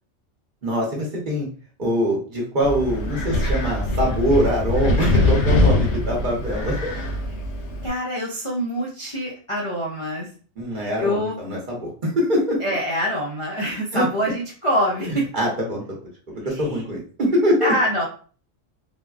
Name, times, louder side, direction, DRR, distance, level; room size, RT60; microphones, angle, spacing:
voice 1, 0.6-1.5 1.8-6.9 10.6-12.6 13.9-14.1 15.3-16.0 16.4-17.7, equal, 45° right, -3 dB, 0.9 m, -23 dB
Wind, 2.6-7.9, left 1 dB, 70° left, 0.8 m, -22 dB
voice 2, 7.8-10.3 10.7-11.4 12.6-15.3 16.5-16.8 17.6-18.0, equal, 40° left, -5 dB, 0.5 m, -25 dB
3.5 x 2.1 x 2.4 m, 0.41 s
omnidirectional pair, 1.3 m